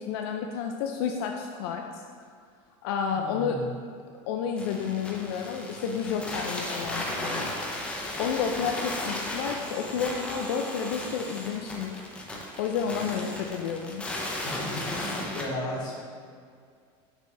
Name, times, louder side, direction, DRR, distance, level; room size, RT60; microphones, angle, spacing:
voice 1, 0.0-2.0 2.8-3.6 4.3-7.5 8.2-12.0 12.6-14.0, left 6 dB, 80° left, 3 dB, 0.5 m, -30 dB
voice 2, 3.1-3.7 14.4-16.0, left 1 dB, 35° left, -5 dB, 1.6 m, -35 dB
sound 1, 4.6-15.4, left 1 dB, 10° left, 0.6 m, -35 dB
6.0 x 5.5 x 3.3 m, 2.2 s
cardioid pair, 170°, 13 cm